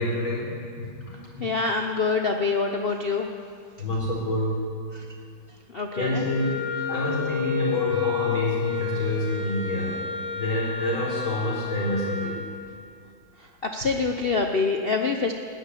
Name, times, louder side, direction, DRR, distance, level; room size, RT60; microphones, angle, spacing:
voice 1, 0.0-1.4 3.8-4.7 6.0-6.5 6.9-9.9 10.4-12.3, left 1 dB, 85° left, -5 dB, 5.3 m, -27 dB
voice 2, 1.4-3.3 4.9-5.0 5.7-6.2 13.7-15.3, left 4 dB, 65° left, 3 dB, 0.5 m, -25 dB
Wind instrument woodwind instrument, 5.9-12.4, left 6 dB, 35° left, 3.4 m, -31 dB
15.0 x 9.9 x 9.8 m, 2.4 s
omnidirectional pair, 2.2 m